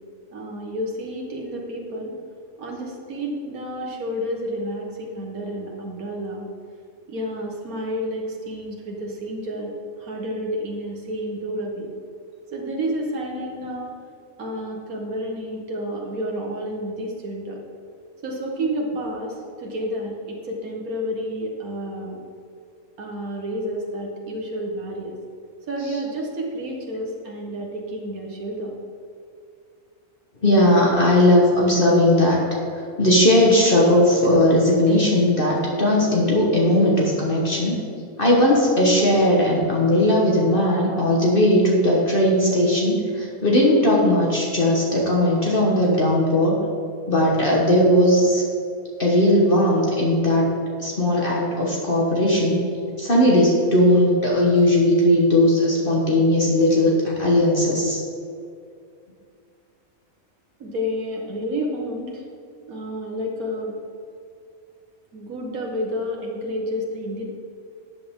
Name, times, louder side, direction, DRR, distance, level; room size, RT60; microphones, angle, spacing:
voice 1, 0.3-2.1 2.6-6.5 7.1-11.9 12.5-13.9 14.4-17.6 18.2-22.2 23.0-25.2 25.7-28.8 60.6-62.2 62.7-63.8 65.1-67.3, equal, 90° right, -1 dB, 1.8 m, -30 dB
voice 2, 30.4-32.4 33.0-37.8 38.2-46.5 47.1-48.4 49.0-50.5 50.8-52.6 53.0-58.0, left 1 dB, 40° left, -3 dB, 1.6 m, -18 dB
12.5 x 8.5 x 3.7 m, 2.4 s
omnidirectional pair, 1.5 m